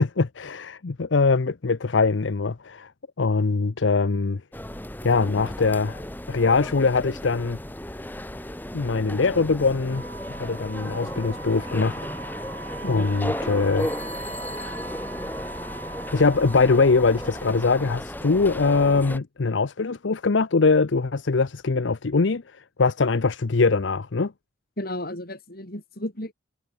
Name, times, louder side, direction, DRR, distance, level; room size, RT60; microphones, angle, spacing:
voice 1, 0.0-2.9 3.2-4.4 5.0-6.0 6.3-7.6 8.7-12.0 12.9-13.9 16.1-24.3, left 4 dB, 70° left, 0.7 m, -22 dB
sound 1, 4.5-19.2, left 1 dB, 10° left, 1.3 m, -35 dB
Wind instrument woodwind instrument, 9.9-18.1, right 4 dB, 80° right, 3.4 m, -41 dB
voice 2, 24.8-26.3, left 1 dB, 50° left, 6.4 m, -33 dB
head